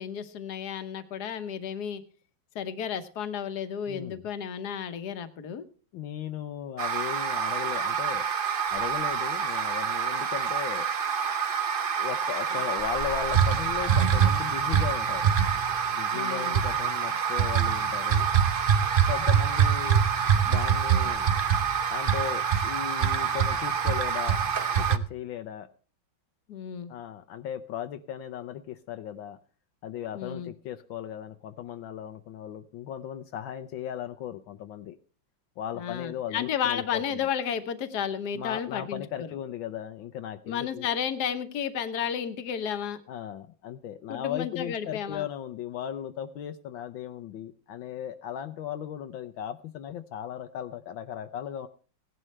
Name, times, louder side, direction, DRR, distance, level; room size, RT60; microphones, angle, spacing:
voice 1, 0.0-2.0 2.5-5.7 16.1-16.6 26.5-26.9 30.1-30.5 35.7-39.3 40.5-43.0 44.1-45.2, left 8 dB, 60° left, 10 dB, 1.5 m, -32 dB
voice 2, 3.9-4.3 5.9-8.2 8.7-10.9 11.9-15.3 15.9-18.3 19.1-20.0 20.5-21.3 21.9-24.4 24.7-25.7 26.9-29.4 29.8-35.0 35.6-37.2 38.3-40.9 43.1-51.7, left 10 dB, 80° left, 8 dB, 1.5 m, -37 dB
sound 1, 6.8-25.0, right 7 dB, 80° right, 0.4 m, -25 dB
17.0 x 11.0 x 3.2 m, 0.39 s
omnidirectional pair, 2.1 m